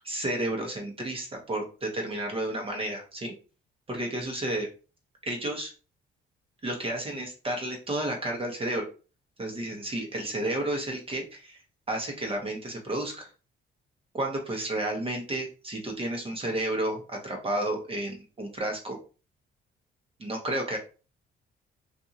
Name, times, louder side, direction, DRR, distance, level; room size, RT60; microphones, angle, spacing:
voice 1, 0.0-3.3 3.9-4.7 5.3-5.7 6.6-8.8 9.4-11.6 11.9-13.3 14.1-19.0 20.2-20.8, right 1 dB, 30° right, 1 dB, 1.0 m, -31 dB
2.6 x 2.5 x 2.8 m, 0.34 s
cardioid pair, 90°, 20 cm